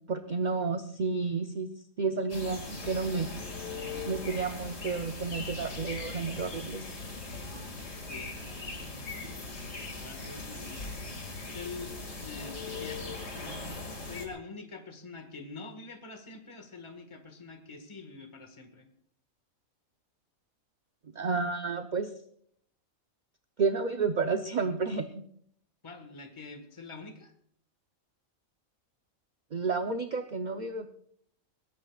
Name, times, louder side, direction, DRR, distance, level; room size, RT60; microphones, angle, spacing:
voice 1, 0.1-1.7 2.0-3.3 4.1-6.9 21.1-22.1 23.6-25.2 29.5-30.9, right 4 dB, 40° right, 6 dB, 0.7 m, -31 dB
sound 1, 2.3-14.3, left 3 dB, 60° left, 2.6 m, -40 dB
voice 2, 8.0-10.9 11.4-13.7 14.0-18.9 25.8-27.3, left 4 dB, 20° left, 5 dB, 1.6 m, -46 dB
21.5 x 18.0 x 2.4 m, 0.64 s
omnidirectional pair, 1.5 m